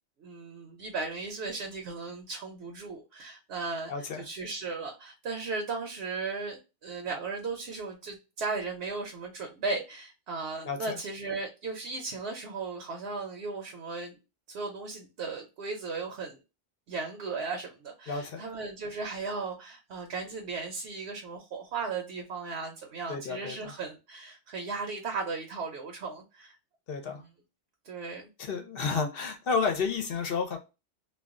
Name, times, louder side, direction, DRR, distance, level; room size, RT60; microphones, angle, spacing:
voice 1, 0.2-3.9 4.2-14.1 14.5-16.4 16.9-26.6 27.0-27.3 27.8-28.3, right 4 dB, 70° right, 2 dB, 0.9 m, -36 dB
voice 2, 3.9-4.2 10.6-11.0 18.1-18.4 23.1-23.7 26.9-27.2 28.4-30.6, left 5 dB, 60° left, 5 dB, 0.7 m, -31 dB
2.3 x 2.3 x 3.6 m, 0.28 s
omnidirectional pair, 1.2 m